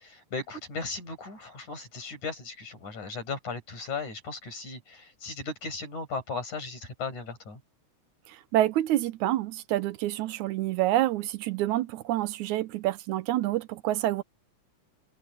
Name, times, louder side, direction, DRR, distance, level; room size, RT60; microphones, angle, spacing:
voice 1, 0.0-7.6, left 4 dB, 75° left, 8.8 m, -37 dB
voice 2, 8.3-14.2, right 14 dB, 80° right, 2.1 m, -27 dB
omnidirectional pair, 3.5 m